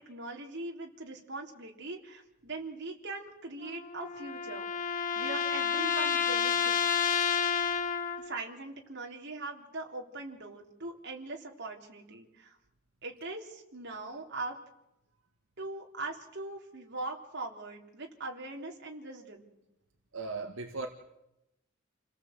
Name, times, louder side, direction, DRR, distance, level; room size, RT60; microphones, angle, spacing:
voice 1, 0.0-4.7 5.2-7.1 8.2-12.6 13.0-14.6 15.6-19.5, right 2 dB, 60° right, 3.6 m, -41 dB
sound 1, 3.6-8.4, left 7 dB, 40° left, 1.5 m, -30 dB
voice 2, 20.1-20.9, right 3 dB, 75° right, 1.9 m, -37 dB
29.0 x 18.0 x 8.0 m
head